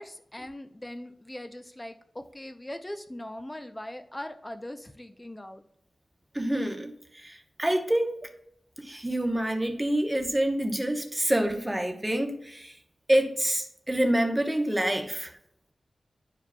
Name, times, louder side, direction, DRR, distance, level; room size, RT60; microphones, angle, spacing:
voice 1, 0.0-5.6, left 1 dB, 15° left, 8 dB, 0.6 m, -40 dB
voice 2, 6.3-8.2 8.8-12.7 13.1-15.3, right 1 dB, 15° right, 4 dB, 0.9 m, -27 dB
11.0 x 4.8 x 2.3 m, 0.70 s
wide cardioid pair, 125°, 0 cm